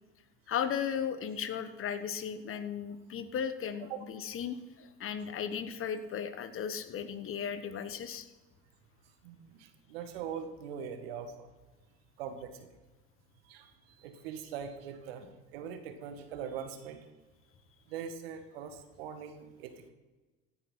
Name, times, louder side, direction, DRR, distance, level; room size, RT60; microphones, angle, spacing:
voice 1, 0.5-8.3, left 8 dB, 45° left, 12 dB, 1.3 m, -36 dB
voice 2, 9.2-11.5 12.2-12.5 13.5-13.7 14.0-15.3 15.5-17.0 17.9-19.9, right 7 dB, 80° right, 7 dB, 1.9 m, -42 dB
16.0 x 9.6 x 5.7 m, 1.2 s
hypercardioid pair, 75°, 29 cm